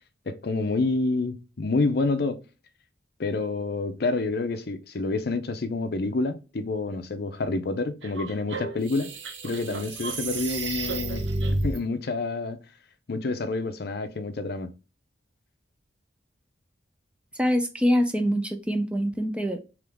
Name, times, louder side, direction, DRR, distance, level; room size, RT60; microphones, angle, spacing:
voice 1, 0.3-2.4 3.2-9.1 9.4-11.3 11.6-12.6 13.1-14.7, left 3 dB, 55° left, 0.5 m, -28 dB
sound 1, 8.0-11.8, right 2 dB, 75° right, 0.8 m, -31 dB
voice 2, 17.4-19.6, equal, 5° right, 0.3 m, -24 dB
3.6 x 3.0 x 3.5 m
head